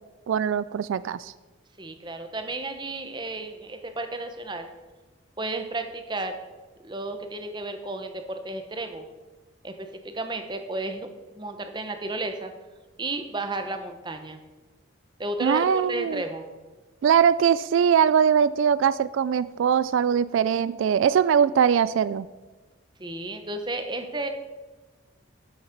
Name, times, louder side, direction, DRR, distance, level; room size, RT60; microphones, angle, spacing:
voice 1, 0.3-1.3 15.4-16.2 17.0-22.3, right 8 dB, 80° right, 16 dB, 0.3 m, -21 dB
voice 2, 1.8-4.7 5.4-6.4 6.8-9.1 9.6-11.1 11.4-12.5 13.0-14.4 15.2-16.4 23.0-24.3, right 2 dB, 20° right, 7 dB, 0.9 m, -33 dB
12.5 x 7.2 x 5.2 m, 1.2 s
head